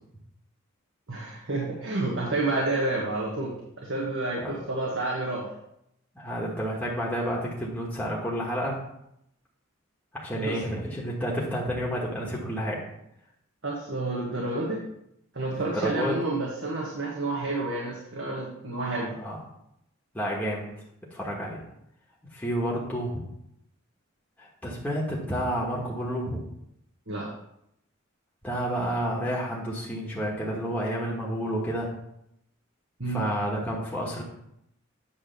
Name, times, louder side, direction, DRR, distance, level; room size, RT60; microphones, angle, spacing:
voice 1, 1.1-5.4 10.4-10.6 13.6-14.8 15.3-19.1 27.1-27.3 33.0-33.3, right 2 dB, 65° right, -4 dB, 1.4 m, -29 dB
voice 2, 6.1-8.8 10.1-12.8 15.5-16.2 19.2-19.4 20.1-20.6 21.1-21.6 22.3-23.2 24.4-26.4 28.4-31.9 33.1-34.2, equal, 5° left, -4 dB, 1.2 m, -30 dB
8.4 x 3.4 x 6.6 m, 0.78 s
head